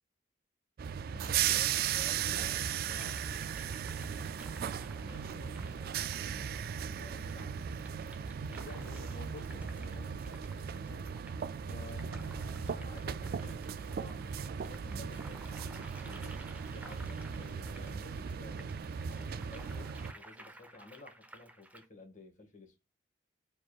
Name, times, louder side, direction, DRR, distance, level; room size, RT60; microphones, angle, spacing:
sound 1, 0.8-20.1, right 8 dB, 55° right, 0.3 m, -37 dB
voice 1, 1.0-2.7 4.9-6.5 6.8-7.7 12.7-16.4 16.7-18.8 19.1-22.8, left 2 dB, 45° left, 1.8 m, -54 dB
sound 2, 1.0-7.9, equal, 20° left, 1.3 m, -64 dB
sound 3, 2.6-21.9, right 1 dB, 10° right, 0.8 m, -55 dB
voice 2, 8.5-10.4 10.8-11.1 11.6-12.9, left 2 dB, 70° left, 0.7 m, -50 dB
4.7 x 4.3 x 2.4 m
head